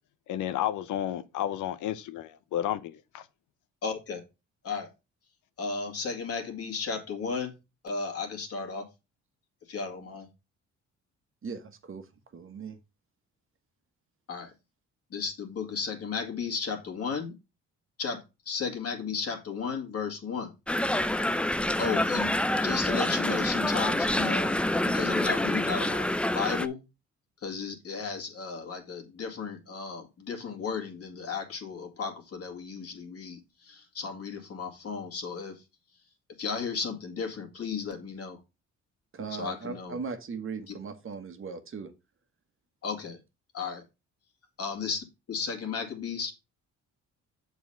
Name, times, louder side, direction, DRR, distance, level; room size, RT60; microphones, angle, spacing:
voice 1, 0.3-3.2, left 11 dB, 80° left, 0.7 m, -32 dB
voice 2, 3.8-4.2 4.6-4.9 5.6-7.5 7.8-8.9 9.7-10.3 14.3-14.5 15.1-17.3 18.0-18.2 18.5-20.5 21.8-22.3 22.6-26.1 26.3-26.8 27.4-33.4 33.6-35.6 36.4-38.4 39.4-40.0 42.8-43.2 43.5-43.8 44.6-46.3, left 5 dB, 50° left, 2.2 m, -34 dB
voice 3, 11.4-12.8 39.1-41.9, right 5 dB, 45° right, 1.4 m, -38 dB
sound 1, 20.7-26.7, left 1 dB, 5° left, 0.4 m, -27 dB
7.1 x 4.1 x 5.5 m
cardioid pair, 90°, 30 cm